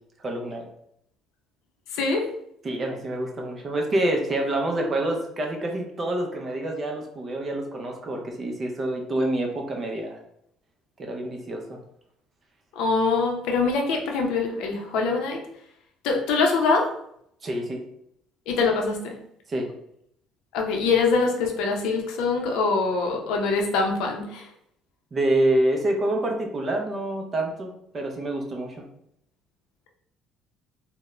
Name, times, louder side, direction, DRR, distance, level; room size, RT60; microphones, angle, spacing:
voice 1, 0.2-0.7 2.6-10.2 11.0-11.8 17.4-17.8 19.5-19.7 25.1-28.8, right 1 dB, 25° right, 2 dB, 0.4 m, -27 dB
voice 2, 1.9-2.2 12.8-15.4 16.0-16.9 18.5-19.1 20.5-24.4, left 4 dB, 80° left, 1 dB, 0.5 m, -24 dB
2.3 x 2.0 x 3.0 m, 0.72 s
cardioid pair, 150°, 0 cm